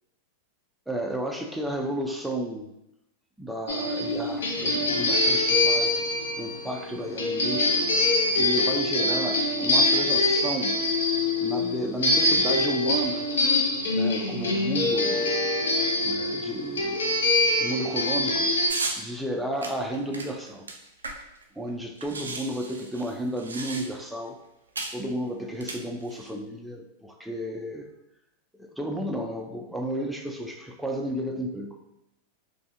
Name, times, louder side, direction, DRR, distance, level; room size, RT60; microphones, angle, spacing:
voice 1, 0.9-2.7 3.4-6.0 6.4-7.8 8.4-10.8 11.4-13.3 13.9-15.4 16.0-17.0 17.6-18.5 19.0-20.7 21.6-24.4 24.9-27.9 28.6-31.8, right 1 dB, 5° right, 2 dB, 0.3 m, -32 dB
sound 1, 3.7-18.7, left 2 dB, 80° left, 0.5 m, -24 dB
sound 2, 18.7-19.0 19.6-21.4 21.7-21.8 22.0-24.1 24.8-25.0 25.5-26.3, right 3 dB, 90° right, 0.3 m, -35 dB
2.6 x 2.5 x 2.4 m, 0.84 s
hypercardioid pair, 105°, 0 cm